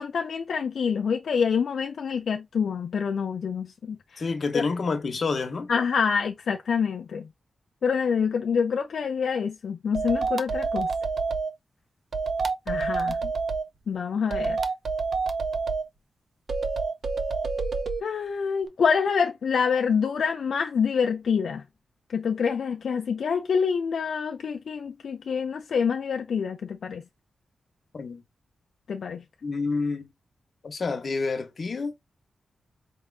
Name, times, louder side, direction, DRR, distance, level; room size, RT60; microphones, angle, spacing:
voice 1, 0.0-4.2 4.5-4.6 5.7-7.3 7.8-10.9 12.7-13.2 13.9-14.6 18.0-21.6 22.1-27.0 28.9-29.2, left 6 dB, 65° left, 0.4 m, -26 dB
voice 2, 4.2-5.7 13.2-13.3 27.9-28.2 29.4-30.1 30.6-31.9, left 4 dB, 45° left, 0.8 m, -28 dB
sound 1, 9.9-11.5 12.1-13.6 14.3-15.8 16.5-18.0, right 4 dB, 55° right, 0.5 m, -27 dB
4.5 x 2.4 x 3.3 m
wide cardioid pair, 175°, 0 cm